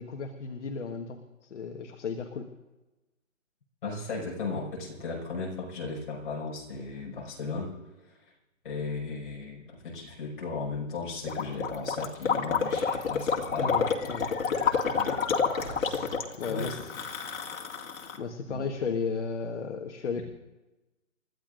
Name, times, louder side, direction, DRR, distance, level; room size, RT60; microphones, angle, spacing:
voice 1, 0.0-2.5 13.6-14.3 16.4-16.8 18.2-20.2, left 5 dB, 60° left, 4 dB, 1.5 m, -34 dB
voice 2, 3.8-7.7 8.6-13.7 14.9-15.3 16.4-16.7 18.5-18.7, left 4 dB, 40° left, -3 dB, 5.9 m, -36 dB
Gurgling, 11.3-18.2, left 6 dB, 75° left, 2.3 m, -29 dB
sound 1, 12.7-16.3, left 1 dB, 5° left, 0.9 m, -46 dB
30.0 x 14.0 x 2.6 m, 1.1 s
hypercardioid pair, 175°, 40 cm